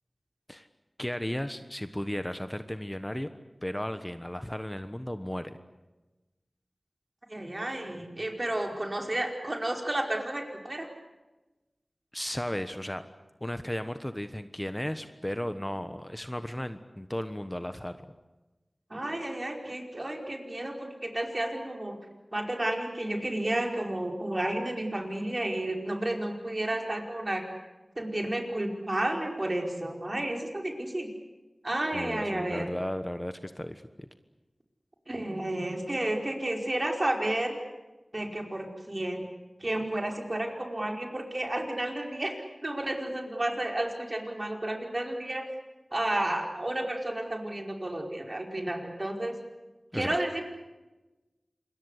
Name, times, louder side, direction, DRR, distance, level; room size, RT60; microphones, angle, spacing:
voice 1, 1.0-3.3 3.6-5.6 12.1-13.0 13.4-18.1 31.9-34.1 49.9-50.1, left 1 dB, 15° left, 10 dB, 1.3 m, -35 dB
voice 2, 7.3-10.9 18.9-22.0 22.3-27.4 28.0-31.1 31.6-32.7 35.1-37.6 38.1-39.2 39.6-42.3 42.6-45.4 45.9-49.3 49.9-50.4, right 1 dB, 40° right, 3 dB, 4.9 m, -31 dB
27.0 x 22.5 x 8.3 m, 1.1 s
wide cardioid pair, 40°, 0 cm